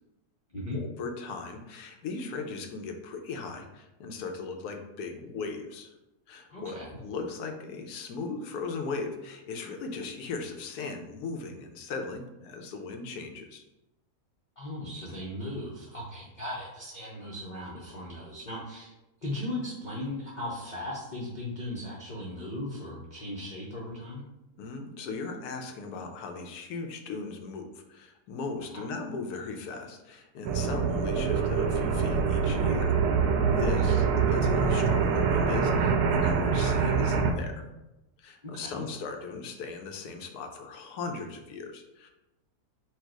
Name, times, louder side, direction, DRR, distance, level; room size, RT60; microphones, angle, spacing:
voice 1, 0.7-5.9 6.3-6.8 7.0-13.6 24.6-33.0 33.5-37.6 38.2-42.1, left 4 dB, 80° left, 4 dB, 1.2 m, -38 dB
voice 2, 6.5-7.0 14.6-18.9 19.2-24.2 28.7-28.8 33.8-33.9 38.4-38.8, left 1 dB, 40° left, -5 dB, 0.8 m, -37 dB
sound 1, 30.4-37.3, right 5 dB, 85° right, 1.1 m, -25 dB
4.5 x 2.4 x 4.6 m, 0.96 s
omnidirectional pair, 1.7 m